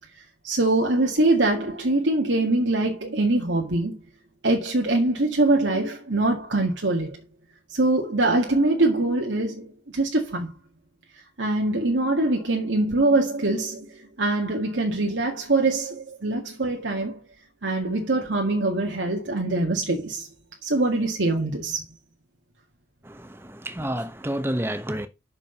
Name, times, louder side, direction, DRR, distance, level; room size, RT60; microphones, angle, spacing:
voice 1, 0.4-4.0 4.4-7.2 7.7-10.5 11.4-17.2 17.6-20.3 20.6-21.8, right 2 dB, 90° right, 2.0 m, -23 dB
voice 2, 23.1-25.1, right 1 dB, 15° right, 1.0 m, -30 dB
6.3 x 5.9 x 7.0 m
head